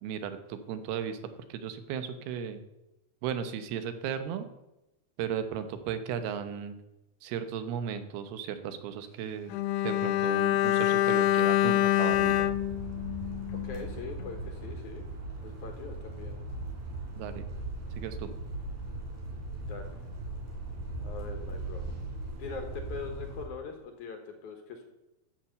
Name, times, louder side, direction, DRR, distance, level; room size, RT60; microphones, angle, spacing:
voice 1, 0.0-1.2 1.5-2.6 3.2-4.5 5.2-6.8 7.2-9.5 9.8-12.5 17.2-17.4 17.9-18.3, right 8 dB, 80° right, 10 dB, 2.9 m, -35 dB
Bowed string instrument, 9.5-13.9 14.2-14.4, left 13 dB, 85° left, 2.6 m, -26 dB
sound 1, 12.1-23.4, right 2 dB, 65° right, 4.5 m, -39 dB
voice 2, 13.5-15.0 15.4-16.4 19.6-20.0 21.0-21.8 22.4-24.8, left 4 dB, 65° left, 5 dB, 2.2 m, -42 dB
13.0 x 6.0 x 7.8 m, 0.94 s
omnidirectional pair, 4.6 m